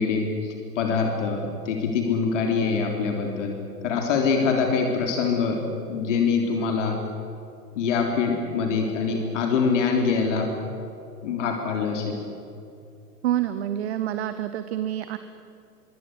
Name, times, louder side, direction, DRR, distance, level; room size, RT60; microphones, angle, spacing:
voice 1, 0.0-3.6 3.8-7.0 7.8-10.5 11.2-12.2, left 5 dB, 50° left, 3 dB, 3.7 m, -24 dB
voice 2, 13.2-15.2, right 11 dB, 40° right, 11 dB, 1.3 m, -27 dB
25.0 x 24.5 x 8.1 m, 2.7 s
figure-of-eight pair, 110°, 48 cm